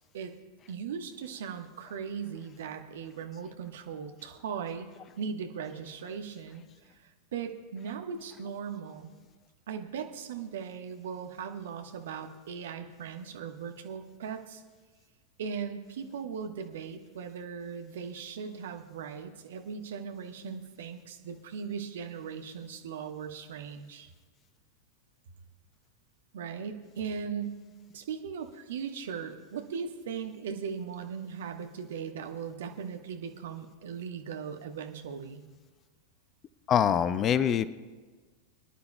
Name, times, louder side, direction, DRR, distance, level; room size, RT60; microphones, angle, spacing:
voice 1, 0.7-4.9 5.2-6.6 6.9-9.1 9.7-14.6 15.4-24.1 26.3-27.6 27.9-35.5, right 6 dB, 60° right, 5 dB, 1.1 m, -38 dB
voice 2, 36.7-37.7, left 8 dB, 30° left, 16 dB, 0.5 m, -24 dB
24.5 x 10.5 x 2.2 m, 1.4 s
figure-of-eight pair, 90°, 0 cm